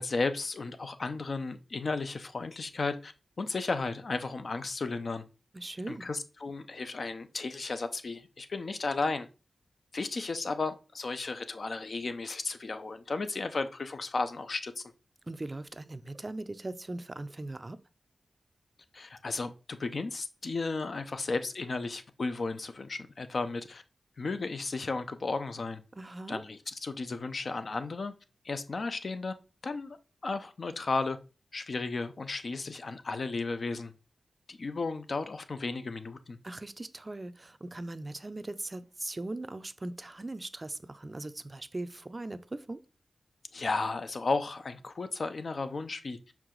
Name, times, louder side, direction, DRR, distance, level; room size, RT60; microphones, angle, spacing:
voice 1, 0.0-5.2 5.9-9.3 9.9-14.8 18.9-23.8 24.2-25.8 26.3-28.1 28.4-29.3 29.6-30.0 30.2-31.2 31.5-33.9 34.5-36.4 43.5-46.2, left 3 dB, 60° left, 0.6 m, -34 dB
voice 2, 5.5-6.0 15.3-17.8 25.9-26.4 36.4-42.8, right 2 dB, 30° right, 0.5 m, -39 dB
5.7 x 4.7 x 3.8 m
wide cardioid pair, 75°, 0 cm